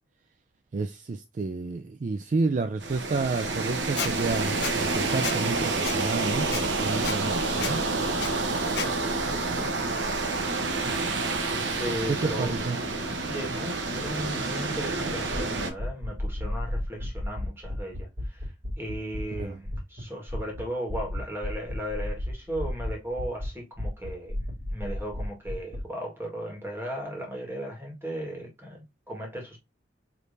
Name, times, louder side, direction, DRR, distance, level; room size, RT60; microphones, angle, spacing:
voice 1, 0.7-7.9 9.5-9.6 12.1-12.8 19.4-19.6, right 3 dB, 40° right, 0.3 m, -30 dB
sound 1, 2.8-15.7, right 3 dB, 80° right, 0.9 m, -28 dB
Squeak, 4.0-4.1 4.6-4.7 5.2-5.4 5.8-5.9 6.5-6.6 7.0-7.2 7.6-7.7 8.2-8.3 8.7-8.9, left 8 dB, 60° left, 0.6 m, -31 dB
voice 2, 11.5-12.5 13.3-24.4 24.7-29.6, equal, 15° right, 1.7 m, -36 dB
sound 2, 15.3-20.0 20.3-20.6 20.9-23.5 23.8-25.8, left 1 dB, 65° right, 2.9 m, -32 dB
5.0 x 3.2 x 2.7 m
head